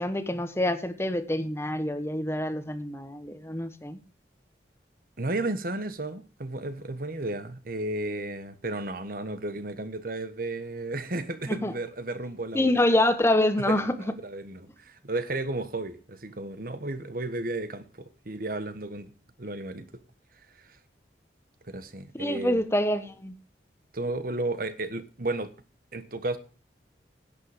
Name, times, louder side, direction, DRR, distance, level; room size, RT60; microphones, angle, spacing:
voice 1, 0.0-4.0 11.5-11.7 12.5-13.9 22.1-23.3, left 1 dB, 15° left, 1.2 m, -26 dB
voice 2, 5.2-12.8 13.7-19.1 19.4-19.9 21.7-22.5 23.9-25.5 25.9-26.4, right 2 dB, 55° right, 1.4 m, -33 dB
10.5 x 8.8 x 5.1 m
head